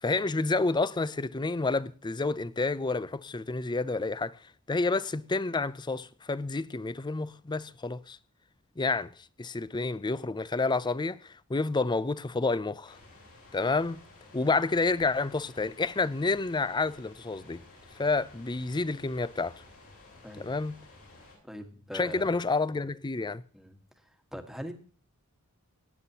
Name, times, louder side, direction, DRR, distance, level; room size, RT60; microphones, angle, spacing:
voice 1, 0.0-4.4 4.7-8.2 8.8-9.1 9.4-13.0 13.5-14.0 14.3-17.6 18.0-19.6 20.4-20.8 21.9-23.4, left 3 dB, 20° left, 0.5 m, -29 dB
sound 1, 12.8-21.4, left 2 dB, 75° left, 7.1 m, -54 dB
voice 2, 21.4-22.3 23.5-23.8 24.0-24.7, equal, ahead, 1.5 m, -42 dB
18.0 x 10.0 x 2.8 m
head